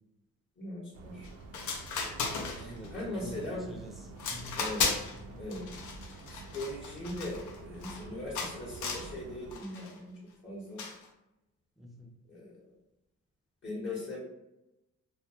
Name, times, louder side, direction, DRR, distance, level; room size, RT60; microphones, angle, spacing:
voice 1, 0.6-1.3 2.5-3.6 4.5-4.9 5.4-5.7 6.3-10.1 10.4-10.8 12.3-12.7 13.6-14.2, left 1 dB, 40° left, -6 dB, 0.8 m, -40 dB
sound 1, 0.9-9.6, right 3 dB, 55° right, 0.4 m, -48 dB
sound 2, 1.2-1.3 1.5-2.9 3.3-3.7 4.2-5.2 5.5-8.0 8.4-9.1 9.5-9.9 10.8-11.1, left 4 dB, 75° left, 0.5 m, -35 dB
voice 2, 2.6-4.6 5.3-5.4 11.8-12.1, right 1 dB, ahead, 1 dB, 0.5 m, -47 dB
2.3 x 2.2 x 2.8 m, 0.92 s
cardioid pair, 90°, 30 cm